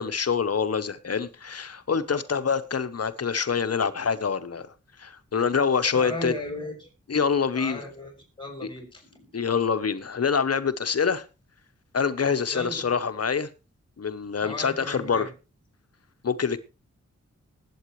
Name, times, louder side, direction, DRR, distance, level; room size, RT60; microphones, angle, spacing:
voice 1, 0.0-4.7 5.0-6.3 7.1-7.8 9.3-11.2 11.9-13.5 14.0-15.3 16.2-16.6, left 6 dB, 55° left, 1.0 m, -25 dB
voice 2, 5.9-6.9 7.5-8.1 8.4-9.4 12.5-12.9 14.4-15.3, left 1 dB, 15° left, 6.8 m, -36 dB
20.0 x 8.7 x 3.2 m
cardioid pair, 65°, 29 cm